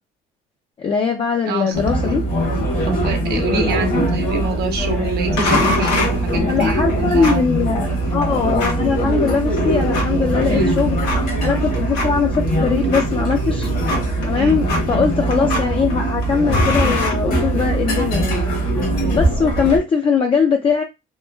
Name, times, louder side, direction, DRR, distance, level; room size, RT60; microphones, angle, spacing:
voice 1, 0.8-2.2 6.5-13.7 14.2-18.4 19.1-20.8, left 6 dB, 30° left, 0.4 m, -20 dB
voice 2, 1.4-1.8 2.9-7.5 10.5-10.7 14.4-14.6, right 3 dB, 70° right, 0.8 m, -26 dB
sound 1, 1.7-19.8, right 1 dB, 55° left, 1.1 m, -21 dB
sound 2, 5.4-17.9, left 2 dB, 85° left, 1.0 m, -27 dB
3.0 x 2.3 x 2.2 m
cardioid pair, 110°, 17 cm